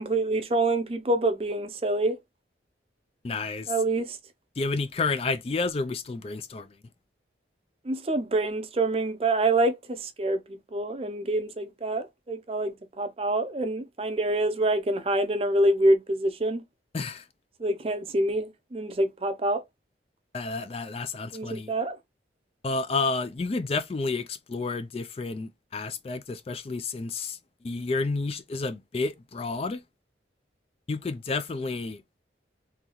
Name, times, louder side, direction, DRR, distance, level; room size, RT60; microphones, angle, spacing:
voice 1, 0.0-2.2 3.7-4.2 7.9-16.6 17.6-19.6 21.3-22.0, right 2 dB, 30° right, 0.5 m, -26 dB
voice 2, 3.2-3.7 4.6-6.8 16.9-17.3 20.3-21.7 22.6-27.4 27.6-29.8 30.9-32.0, left 3 dB, 35° left, 0.3 m, -30 dB
3.9 x 2.8 x 3.0 m
head